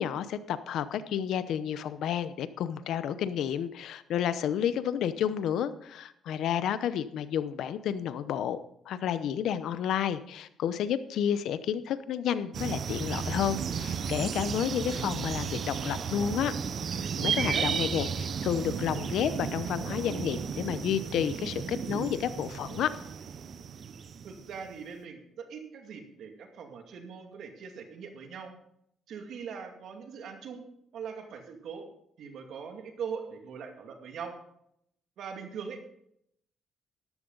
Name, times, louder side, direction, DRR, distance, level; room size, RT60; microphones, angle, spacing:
voice 1, 0.0-8.6 8.9-16.5 17.2-22.9, left 9 dB, 80° left, 13 dB, 0.8 m, -31 dB
sound 1, 12.5-24.7, right 6 dB, 55° right, 0.7 m, -34 dB
voice 2, 17.1-17.7 24.2-28.5 29.1-30.6 30.9-31.8 32.2-34.4 35.2-35.8, right 6 dB, 70° right, 4 dB, 2.3 m, -41 dB
13.5 x 11.5 x 4.0 m, 0.73 s
cardioid pair, 90°, 0 cm